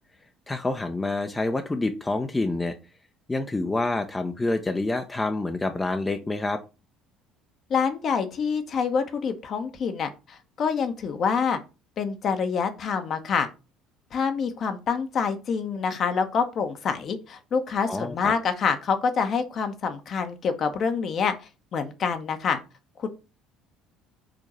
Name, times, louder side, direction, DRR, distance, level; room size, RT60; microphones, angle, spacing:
voice 1, 0.5-2.7 3.3-6.6 17.9-18.3, left 2 dB, 15° left, 6 dB, 0.7 m, -27 dB
voice 2, 7.7-11.6 12.0-13.5 14.1-21.3 21.7-22.6 23.0-23.1, left 6 dB, 45° left, 7 dB, 1.0 m, -26 dB
5.1 x 3.8 x 5.6 m, 0.30 s
figure-of-eight pair, 55°, 0 cm